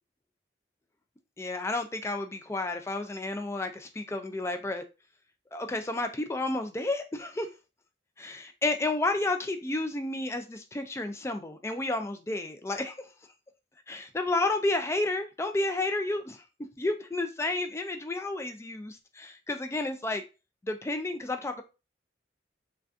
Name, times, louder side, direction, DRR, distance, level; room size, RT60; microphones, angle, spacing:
voice 1, 1.4-4.8 5.5-7.5 8.2-13.1 13.9-16.4 16.8-20.2 20.6-21.6, left 2 dB, 15° left, 0.3 m, -31 dB
3.3 x 2.6 x 2.3 m
head